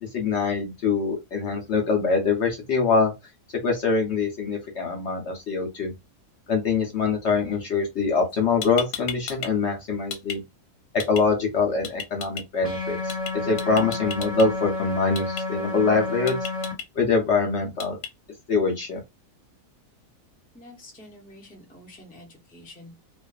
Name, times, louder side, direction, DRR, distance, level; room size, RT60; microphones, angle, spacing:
voice 1, 0.0-3.1 3.6-5.9 6.5-10.4 11.1-13.1 13.4-16.4 16.9-18.0 18.5-19.0, left 4 dB, 60° left, 0.8 m, -24 dB
sound 1, 8.3-8.4 8.6-9.5 9.8-10.4 11.0-11.2 11.8-12.4 13.1-13.3 13.6-14.5 15.2-15.4 16.3-16.8 17.8-18.1, left 8 dB, 85° left, 1.2 m, -33 dB
sound 2, 12.6-16.7, left 2 dB, 10° right, 1.3 m, -30 dB
voice 2, 20.5-23.0, left 1 dB, 10° left, 0.4 m, -47 dB
2.4 x 2.4 x 2.3 m
omnidirectional pair, 1.7 m